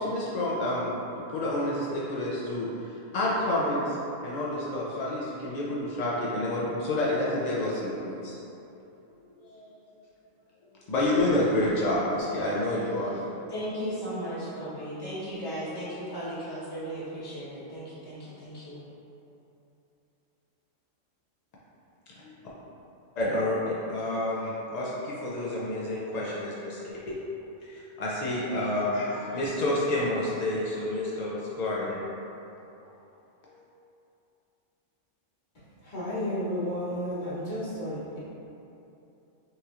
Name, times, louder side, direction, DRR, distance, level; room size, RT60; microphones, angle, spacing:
voice 1, 0.0-4.0 4.2-8.6 9.4-9.7 10.9-13.2 22.2-22.4 23.2-26.8 27.1-27.2 27.6-32.0 33.5-33.6, left 1 dB, 60° left, -6 dB, 0.4 m, -29 dB
voice 2, 13.5-18.8, equal, 20° left, -10 dB, 1.0 m, -36 dB
voice 3, 35.8-38.2, equal, 40° left, -10 dB, 1.1 m, -32 dB
5.7 x 3.1 x 2.4 m, 2.8 s
omnidirectional pair, 1.3 m